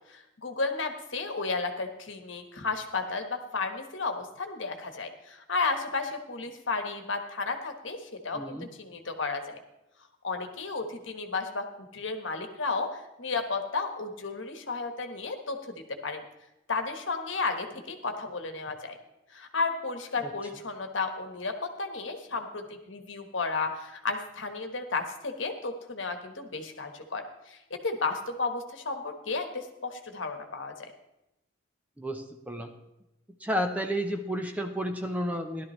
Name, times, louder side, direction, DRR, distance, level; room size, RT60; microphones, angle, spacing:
voice 1, 0.1-9.6 10.2-11.7 11.9-16.2 16.7-19.0 19.3-30.9, left 4 dB, 65° left, 5 dB, 1.3 m, -33 dB
voice 2, 8.3-8.7 20.2-20.3 32.0-32.7 33.4-35.6, equal, 5° right, 4 dB, 0.7 m, -31 dB
16.5 x 12.0 x 3.2 m, 0.90 s
head